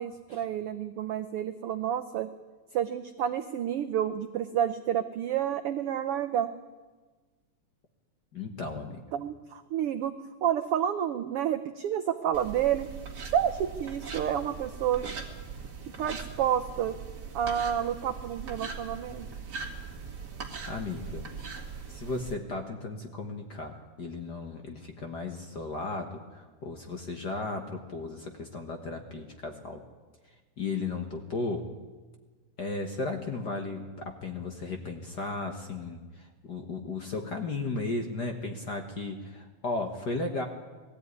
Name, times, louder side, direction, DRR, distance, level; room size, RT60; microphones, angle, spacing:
voice 1, 0.0-2.3 2.7-6.5 9.1-10.1 10.4-12.9 13.3-15.2 15.8-16.9 17.3-19.3, right 10 dB, 80° right, 9 dB, 1.3 m, -29 dB
voice 2, 8.3-9.0 20.7-21.3 21.9-29.8 30.6-31.7 32.6-40.5, left 3 dB, 45° left, 4 dB, 1.4 m, -35 dB
sound 1, 12.3-22.3, right 5 dB, 35° right, 2.4 m, -40 dB
20.0 x 14.0 x 9.6 m, 1.3 s
omnidirectional pair, 3.5 m